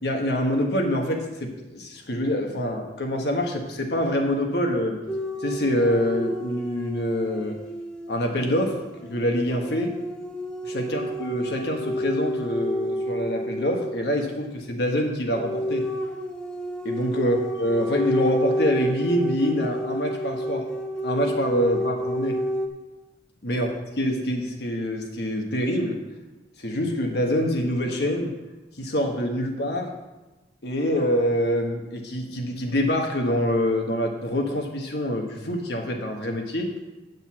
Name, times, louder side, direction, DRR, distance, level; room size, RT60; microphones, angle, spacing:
voice 1, 0.0-5.0 5.4-7.6 8.1-9.9 10.6-15.8 16.8-20.7 21.0-22.4 23.4-23.7 24.0-26.0 26.6-28.3 28.8-29.9 30.6-36.7, equal, 65° left, 2 dB, 1.4 m, -25 dB
sound 1, 5.1-14.1 15.3-22.7, equal, 5° left, 0.9 m, -30 dB
9.2 x 5.4 x 7.2 m, 1.1 s
head